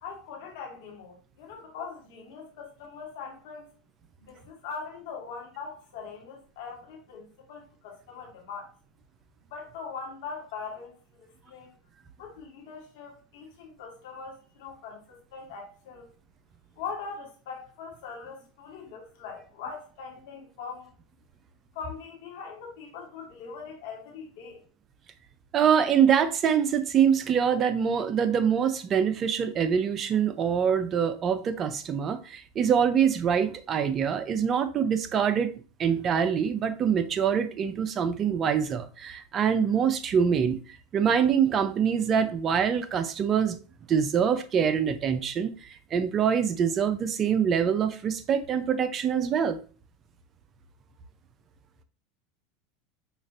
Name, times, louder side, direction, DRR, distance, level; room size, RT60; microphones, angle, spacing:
voice 1, 0.0-3.7 4.2-8.7 9.5-11.7 12.2-16.1 16.8-20.9 21.7-24.6, left 5 dB, 70° left, 1.4 m, -41 dB
voice 2, 25.5-35.5 35.8-40.6 40.9-43.6 43.9-49.6, right 7 dB, 40° right, 0.5 m, -24 dB
5.1 x 2.4 x 2.5 m
hypercardioid pair, 90°, 0 cm